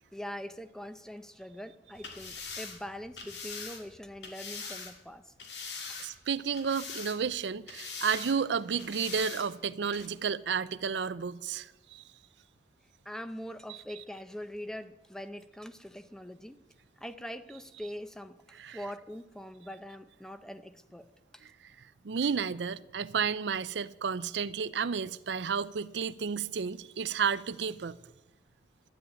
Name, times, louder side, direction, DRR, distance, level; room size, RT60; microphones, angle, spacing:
voice 1, 0.1-5.3 5.9-6.0 13.0-16.6 17.0-21.4, equal, 5° left, 0.6 m, -43 dB
sound 1, 1.9-4.9 5.4-6.3 6.5-7.4 7.7-8.4 8.8-9.5 9.9-10.1, left 5 dB, 70° left, 2.5 m, -42 dB
voice 2, 6.0-12.0 18.6-18.8 21.6-21.7 22.0-28.0, right 6 dB, 80° right, 0.5 m, -32 dB
12.5 x 10.0 x 8.6 m
head